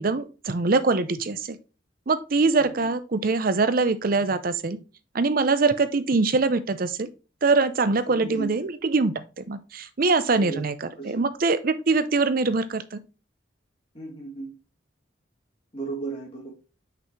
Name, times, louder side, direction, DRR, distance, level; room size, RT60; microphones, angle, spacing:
voice 1, 0.0-1.6 2.1-4.8 5.1-7.1 7.4-13.0, right 3 dB, 50° right, 13 dB, 0.6 m, -23 dB
voice 2, 2.6-2.9 8.0-8.6 10.3-10.6 11.0-11.2 13.9-14.5 15.7-16.5, right 3 dB, 30° left, -3 dB, 2.9 m, -35 dB
6.1 x 5.6 x 3.1 m, 0.32 s
head